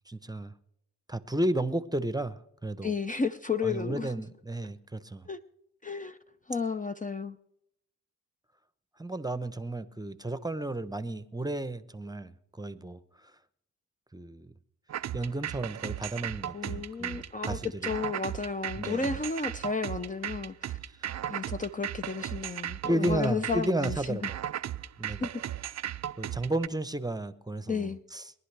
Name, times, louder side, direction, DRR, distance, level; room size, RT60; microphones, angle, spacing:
voice 1, 0.1-0.5 1.1-2.9 3.6-5.3 9.0-13.4 14.1-14.5 15.1-17.9 18.8-19.1 20.8-21.1 22.9-24.4 25.0-25.3 26.2-28.3, right 1 dB, 10° right, 0.9 m, -33 dB
voice 2, 2.8-4.1 5.3-5.4 5.8-6.2 6.5-7.4 16.5-20.8 21.3-24.2 25.2-25.4 27.7-28.0, left 5 dB, 25° left, 0.6 m, -33 dB
sound 1, 14.9-26.7, right 11 dB, 50° right, 0.5 m, -36 dB
23.0 x 11.0 x 3.4 m
cardioid pair, 55°, 34 cm